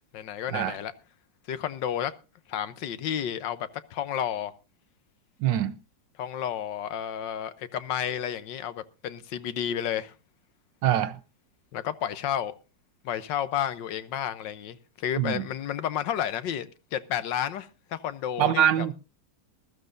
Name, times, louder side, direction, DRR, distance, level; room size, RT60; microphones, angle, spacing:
voice 1, 0.1-0.9 1.5-2.1 2.5-4.5 6.2-10.1 11.7-12.5 13.0-18.9, left 10 dB, 85° left, 1.5 m, -31 dB
voice 2, 5.4-5.7 10.8-11.2 15.2-15.4 18.4-18.9, right 10 dB, 90° right, 1.6 m, -24 dB
20.0 x 13.5 x 2.6 m
omnidirectional pair, 1.9 m